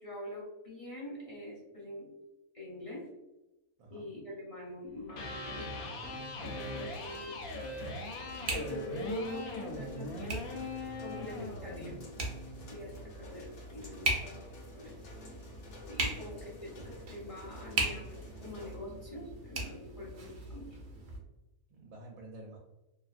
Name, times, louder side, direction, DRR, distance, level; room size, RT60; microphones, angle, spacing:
voice 1, 0.0-2.1 2.5-3.1 3.9-5.7 6.1-6.2 6.5-7.3 8.5-10.7 11.0-12.0 12.7-14.4 14.7-14.9 15.9-20.7, left 1 dB, 30° left, -6 dB, 0.7 m, -44 dB
Electric guitar, 5.0-13.1, left 2 dB, 80° left, 1.1 m, -41 dB
sound 1, 6.0-21.2, right 2 dB, 55° right, 0.8 m, -40 dB
voice 2, 6.2-6.8 16.1-16.4 16.8-16.9 21.7-22.6, right 1 dB, 80° right, -2 dB, 1.1 m, -51 dB
sound 2, 6.4-18.8, left 3 dB, 60° left, 0.8 m, -54 dB
2.7 x 2.5 x 2.4 m, 0.99 s
omnidirectional pair, 1.5 m